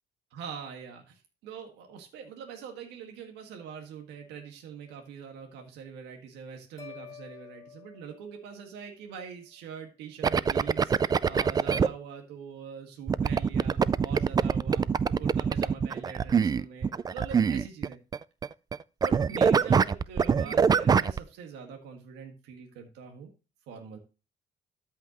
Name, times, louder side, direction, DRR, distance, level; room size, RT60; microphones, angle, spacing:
voice 1, 0.3-14.9 15.2-18.0 19.0-23.3 23.7-24.0, right 6 dB, 85° right, 3 dB, 1.7 m, -43 dB
sound 1, 6.8-9.1, left 8 dB, 20° left, 1.9 m, -49 dB
sound 2, 10.2-11.9 13.1-18.8 19.0-21.2, right 6 dB, 25° right, 0.3 m, -24 dB
13.5 x 5.7 x 3.0 m, 0.32 s
cardioid pair, 110°, 17 cm